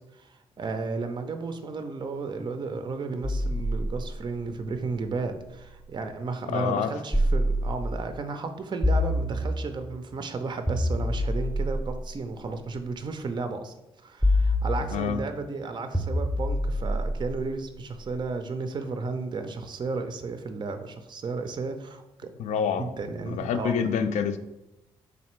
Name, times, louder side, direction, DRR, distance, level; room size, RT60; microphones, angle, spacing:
voice 1, 0.1-13.7 14.0-22.3 22.8-23.8, right 4 dB, 35° right, 7 dB, 0.5 m, -33 dB
sound 1, 3.2-6.0 7.1-8.2 8.8-9.9 10.7-12.9 14.2-15.3 15.9-18.1, left 1 dB, 5° left, 0.7 m, -28 dB
voice 2, 6.5-6.9 14.9-15.2 22.4-22.9 23.3-24.4, left 7 dB, 65° left, 9 dB, 0.4 m, -27 dB
3.9 x 3.2 x 3.0 m, 0.91 s
hypercardioid pair, 40°, 13 cm